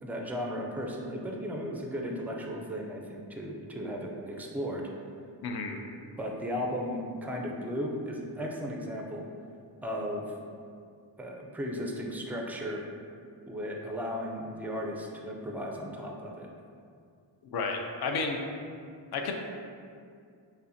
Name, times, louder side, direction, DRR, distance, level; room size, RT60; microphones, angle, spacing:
voice 1, 0.0-4.9 6.2-9.3 9.8-10.3 11.2-12.8 13.5-16.5, equal, 5° right, 0 dB, 0.3 m, -35 dB
voice 2, 5.4-5.8 17.5-18.4 19.1-19.3, left 4 dB, 60° left, 3 dB, 0.5 m, -31 dB
5.3 x 2.1 x 2.6 m, 2.3 s
cardioid pair, 85°, 44 cm